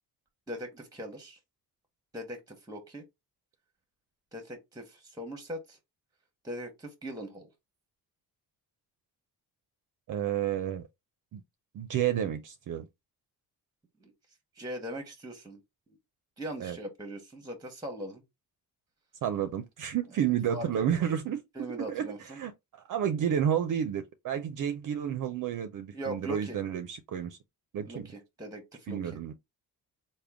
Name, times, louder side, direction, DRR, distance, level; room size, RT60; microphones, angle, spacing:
voice 1, 0.5-1.4 2.1-3.0 4.3-5.8 6.4-7.5 14.0-14.1 14.6-15.6 15.9-16.0 16.4-18.2 20.5-21.1 21.5-22.4 25.9-26.6 27.9-29.2, equal, 10° right, 0.9 m, -40 dB
voice 2, 10.1-10.8 11.3-11.4 11.7-12.9 16.6-16.8 19.2-22.1 22.4-22.5 22.9-27.4 27.7-28.1 28.9-29.3, right 9 dB, 55° right, 0.5 m, -31 dB
3.6 x 2.2 x 3.4 m
cardioid pair, 95°, 38 cm